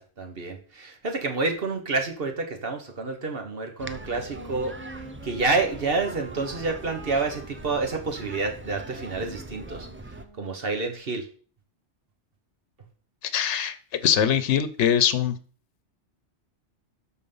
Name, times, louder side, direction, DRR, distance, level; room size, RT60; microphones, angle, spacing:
voice 1, 0.0-11.3, right 3 dB, 55° right, 4 dB, 1.5 m, -29 dB
sound 1, 3.8-10.3, right 2 dB, 15° right, 0.4 m, -42 dB
Wind instrument woodwind instrument, 3.9-10.6, right 2 dB, 75° right, 2.5 m, -47 dB
voice 2, 13.2-15.4, left 9 dB, 75° left, 13 dB, 1.1 m, -23 dB
12.5 x 4.5 x 5.5 m, 0.43 s
omnidirectional pair, 1.2 m